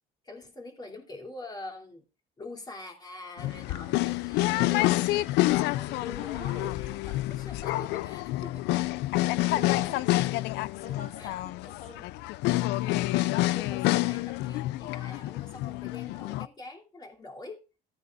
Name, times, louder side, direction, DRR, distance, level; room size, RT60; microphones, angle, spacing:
voice 1, 0.2-2.0 2.4-8.7 11.2-11.3 13.1-17.6, left 2 dB, 25° left, 3.0 m, -44 dB
sound 1, 3.4-16.5, left 18 dB, 90° left, 0.4 m, -28 dB
voice 2, 6.2-6.7 9.2-10.0 10.8-12.1, left 4 dB, 70° left, 5.1 m, -43 dB
15.0 x 9.4 x 2.5 m
cardioid pair, 110°, 17 cm